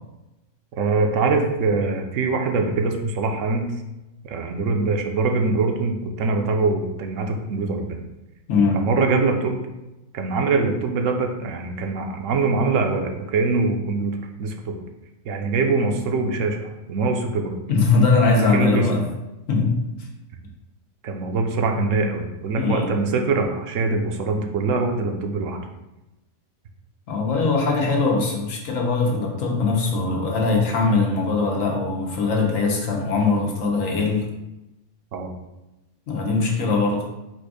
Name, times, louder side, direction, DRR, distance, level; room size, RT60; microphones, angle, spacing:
voice 1, 0.8-3.7 4.2-8.0 8.7-9.7 10.1-14.8 15.2-17.6 18.5-18.9 21.0-25.6 35.1-35.3, right 3 dB, 75° right, 3 dB, 1.0 m, -23 dB
voice 2, 17.7-19.0 19.5-19.8 22.5-22.8 27.1-34.2 36.1-37.0, left 4 dB, 85° left, 0 dB, 1.3 m, -21 dB
4.4 x 2.5 x 4.8 m, 0.96 s
omnidirectional pair, 1.3 m